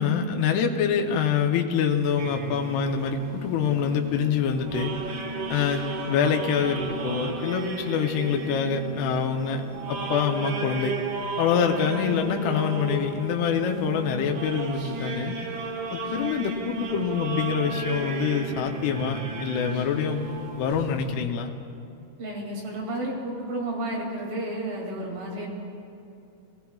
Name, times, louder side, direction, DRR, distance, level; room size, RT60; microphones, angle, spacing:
voice 1, 0.0-4.9 5.5-9.6 9.9-11.0 11.4-15.4 15.9-20.3 20.5-21.5, left 7 dB, 80° left, 2 dB, 2.7 m, -25 dB
sound 1, 2.2-21.2, right 3 dB, 80° right, 1.7 m, -34 dB
voice 2, 22.2-25.5, right 1 dB, 60° right, -3 dB, 4.0 m, -31 dB
21.0 x 16.0 x 2.3 m, 2.7 s
omnidirectional pair, 4.8 m